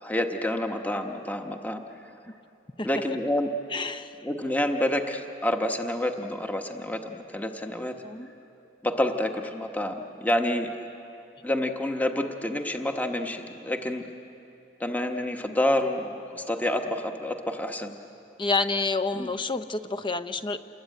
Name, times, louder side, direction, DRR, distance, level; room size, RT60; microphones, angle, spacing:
voice 1, 0.0-1.8 2.8-3.5 4.2-7.9 8.8-10.7 11.4-14.1 14.8-17.9 19.1-19.3, left 1 dB, 10° left, 5 dB, 1.2 m, -28 dB
voice 2, 3.7-4.1 8.0-8.3 18.4-20.6, left 3 dB, 25° left, 11 dB, 0.8 m, -28 dB
28.5 x 21.5 x 9.1 m, 2.8 s
head